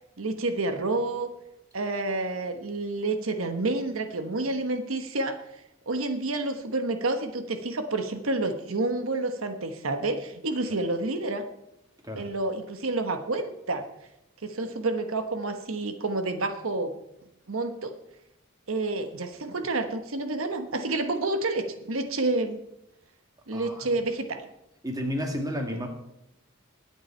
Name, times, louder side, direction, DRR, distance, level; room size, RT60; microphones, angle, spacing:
voice 1, 0.2-1.3 1.7-5.4 5.9-11.5 12.1-13.9 14.4-16.9 17.5-17.9 18.7-22.6 23.5-24.4, right 2 dB, 85° right, 7 dB, 1.2 m, -29 dB
voice 2, 23.5-23.9 24.8-25.9, equal, 15° right, 3 dB, 2.0 m, -31 dB
21.5 x 8.8 x 4.5 m, 0.85 s
head